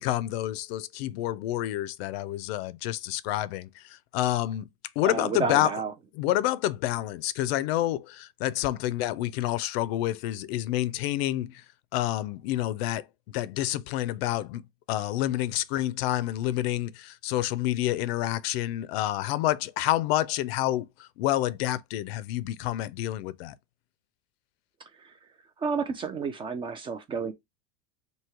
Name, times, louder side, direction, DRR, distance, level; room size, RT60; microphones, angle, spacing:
voice 1, 0.0-4.7 5.0-5.8 6.1-11.6 11.9-14.6 14.9-23.5, left 14 dB, 70° left, 0.5 m, -28 dB
voice 2, 5.0-5.9 25.0-25.1 25.6-27.3, right 5 dB, 15° right, 0.3 m, -30 dB
3.0 x 2.8 x 4.5 m
supercardioid pair, 145°, 32 cm